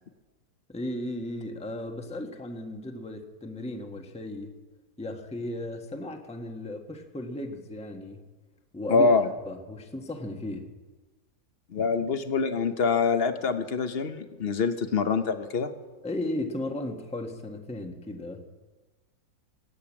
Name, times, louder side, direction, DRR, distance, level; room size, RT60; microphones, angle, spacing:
voice 1, 0.7-4.5 5.0-8.2 8.7-9.1 9.4-10.7 16.0-18.4, left 1 dB, 5° left, 4 dB, 1.1 m, -35 dB
voice 2, 8.9-9.3 11.7-15.7, left 4 dB, 45° left, 9 dB, 0.9 m, -25 dB
19.0 x 8.9 x 8.6 m, 1.2 s
omnidirectional pair, 2.0 m